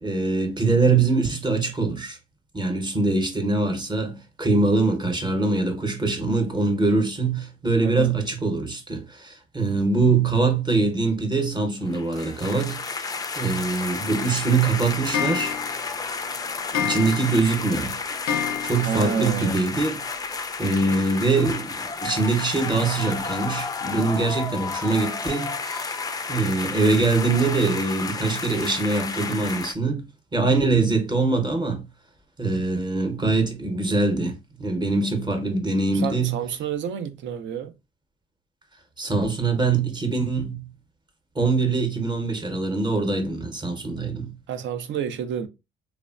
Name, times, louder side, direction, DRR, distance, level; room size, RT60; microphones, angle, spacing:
voice 1, 0.0-2.2 2.5-15.5 16.7-18.0 18.6-20.0 20.6-26.0 26.3-30.0 30.3-31.8 32.4-36.4 39.0-40.7 41.3-44.4, right 3 dB, 20° right, 0.8 m, -23 dB
voice 2, 7.8-8.1 18.8-19.6 35.9-37.8 44.5-45.5, right 7 dB, 70° right, 0.5 m, -29 dB
sound 1, 11.9-29.7, left 4 dB, 20° left, 0.3 m, -32 dB
Clock, 14.2-19.3 19.6-19.7 19.9-20.0 20.2-20.3 21.5-21.6 22.1-22.2 22.8-22.9 23.4-23.5 24.0-24.1 24.7-24.8, left 8 dB, 80° left, 0.4 m, -31 dB
3.2 x 2.1 x 2.4 m
cardioid pair, 90°, 20 cm